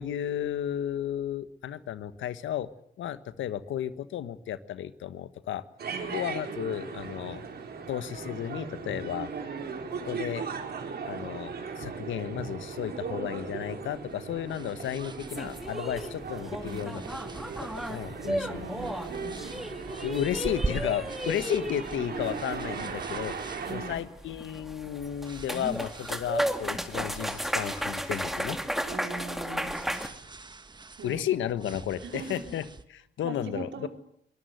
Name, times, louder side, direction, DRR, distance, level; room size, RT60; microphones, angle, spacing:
voice 1, 0.0-2.7 3.0-5.6 6.1-7.4 7.9-9.3 10.0-10.5 11.1-17.0 17.6-18.7 20.0-23.3 23.7-28.6 31.0-33.9, left 10 dB, 75° left, 13 dB, 1.4 m, -33 dB
sound 1, 5.8-24.0, right 5 dB, 50° right, 4.3 m, -38 dB
sound 2, 13.9-32.8, right 3 dB, 20° right, 1.5 m, -44 dB
sound 3, 15.3-30.1, equal, ahead, 2.4 m, -35 dB
voice 2, 18.2-19.6 23.6-24.0 28.9-29.8 31.0-31.2 32.0-32.4 33.2-33.9, right 4 dB, 70° right, 4 dB, 5.1 m, -40 dB
23.5 x 19.0 x 8.0 m, 0.73 s
cardioid pair, 90°, 20 cm